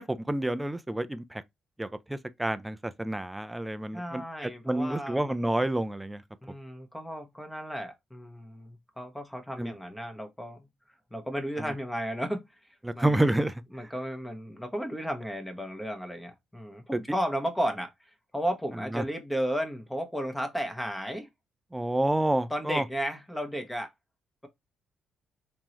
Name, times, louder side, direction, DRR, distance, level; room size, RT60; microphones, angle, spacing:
voice 1, 0.0-1.4 1.8-6.2 9.6-9.7 12.8-13.6 16.9-17.0 18.9-19.0 21.7-22.8, right 1 dB, 10° right, 0.4 m, -29 dB
voice 2, 3.9-5.7 6.4-12.4 12.9-13.2 13.7-21.3 22.5-23.9, equal, 5° left, 1.1 m, -34 dB
3.6 x 3.1 x 2.9 m
cardioid pair, 90°, 0 cm